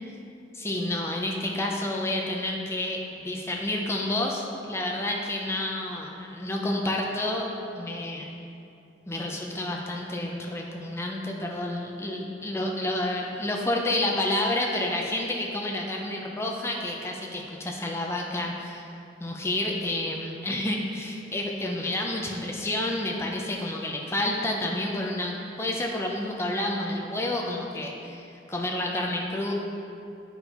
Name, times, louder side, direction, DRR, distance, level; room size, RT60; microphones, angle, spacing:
voice 1, 0.5-7.5 7.7-8.4 9.1-18.9 19.2-29.5, left 1 dB, 15° left, 0 dB, 0.5 m, -29 dB
9.2 x 5.3 x 3.0 m, 2.7 s
head